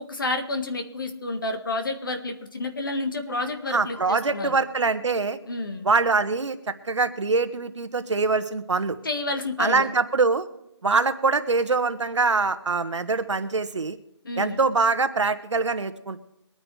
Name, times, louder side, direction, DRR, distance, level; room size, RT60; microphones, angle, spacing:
voice 1, 0.0-4.5 5.5-5.9 9.0-9.9 14.2-14.6, left 2 dB, 45° left, 6 dB, 1.7 m, -30 dB
sound 1, 3.3-6.8, right 5 dB, ahead, 0.5 m, -49 dB
voice 2, 3.7-5.4 5.8-9.0 9.6-10.5 10.8-14.0 14.4-16.2, right 4 dB, 70° right, 10 dB, 1.3 m, -24 dB
23.5 x 9.7 x 3.3 m, 0.84 s
hypercardioid pair, 180°, 16 cm